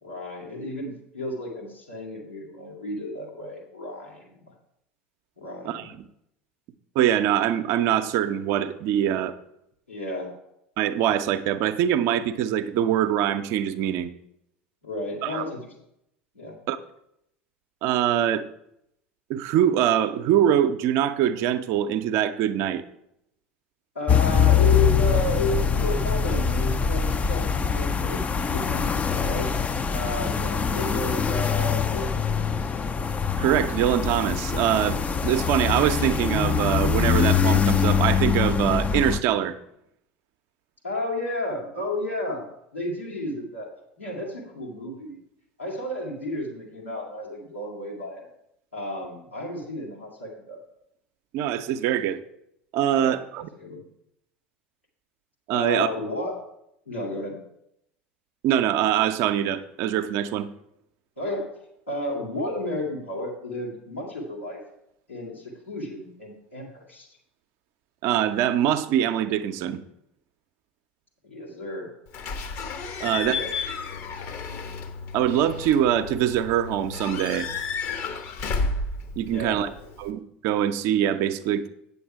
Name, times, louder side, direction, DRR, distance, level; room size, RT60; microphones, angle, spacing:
voice 1, 0.0-4.4 5.4-5.9 9.9-10.3 14.8-15.7 16.3-16.6 23.9-29.5 29.9-32.7 40.8-43.7 44.0-45.2 45.6-48.3 48.7-50.6 52.9-53.2 53.6-53.8 55.5-56.4 56.9-57.4 61.2-61.5 61.9-64.6 65.1-67.1 71.2-71.9 73.0-73.5 74.1-74.3 79.3-79.7, left 1 dB, 90° left, -4 dB, 2.3 m, -32 dB
voice 2, 5.7-6.1 7.0-9.3 10.8-14.1 15.2-15.4 16.7-16.8 17.8-18.5 19.3-22.8 33.4-39.6 51.3-52.2 52.7-53.5 55.5-55.9 58.4-60.5 68.0-69.8 73.0-73.4 75.1-77.5 79.2-79.7 80.0-81.7, right 10 dB, 50° right, 10 dB, 0.6 m, -23 dB
sound 1, 24.1-39.2, left 7 dB, 20° left, 0.4 m, -23 dB
Slam / Squeak / Alarm, 72.1-80.1, left 4 dB, 50° left, 1.0 m, -32 dB
8.5 x 6.9 x 4.7 m, 0.79 s
figure-of-eight pair, 70°, 6 cm